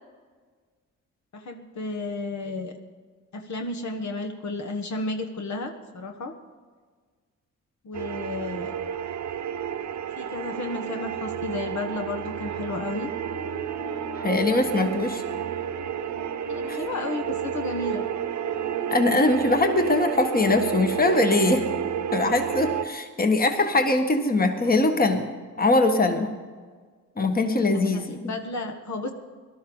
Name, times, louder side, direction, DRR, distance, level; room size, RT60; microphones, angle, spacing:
voice 1, 1.3-2.7 3.3-6.3 7.8-8.7 10.2-13.1 16.5-18.0 27.7-29.1, left 2 dB, 60° left, 4 dB, 1.4 m, -32 dB
sound 1, 7.9-22.9, right 8 dB, 60° right, 1.0 m, -30 dB
voice 2, 14.2-15.2 16.7-16.8 18.9-21.6 22.1-25.3 25.6-26.3 27.2-28.2, left 2 dB, 25° left, 6 dB, 1.5 m, -22 dB
18.0 x 12.5 x 3.9 m, 1.5 s
cardioid pair, 90°, 33 cm